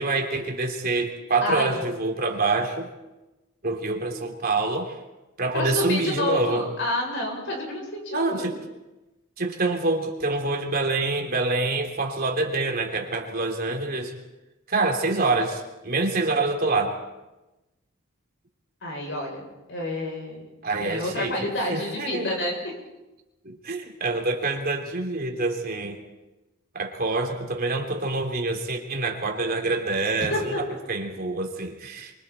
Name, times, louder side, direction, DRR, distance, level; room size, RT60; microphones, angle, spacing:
voice 1, 0.0-2.9 3.6-5.0 5.4-6.7 8.1-8.6 9.4-14.1 14.7-17.0 20.6-22.4 23.4-26.0 26.7-32.1, right 3 dB, 45° right, 2 dB, 3.4 m, -26 dB
voice 2, 1.4-1.8 5.5-8.5 18.8-19.4 19.7-20.4 20.8-22.7 30.3-30.6, left 1 dB, 60° left, -1 dB, 7.9 m, -29 dB
29.5 x 25.0 x 4.4 m, 1.0 s
head